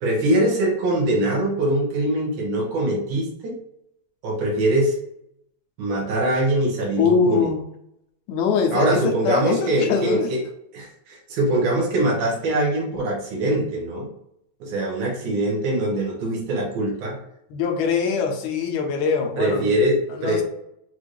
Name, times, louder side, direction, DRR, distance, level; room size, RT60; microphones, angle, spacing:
voice 1, 0.0-3.5 4.2-5.0 5.8-7.5 8.7-10.4 10.7-14.1 14.6-17.2 19.4-20.4, right 1 dB, 90° right, -3 dB, 2.6 m, -23 dB
voice 2, 7.0-7.6 8.3-10.3 17.5-19.7 20.1-20.4, left 6 dB, 80° left, 3 dB, 1.9 m, -23 dB
6.0 x 2.5 x 3.1 m, 0.77 s
omnidirectional pair, 3.3 m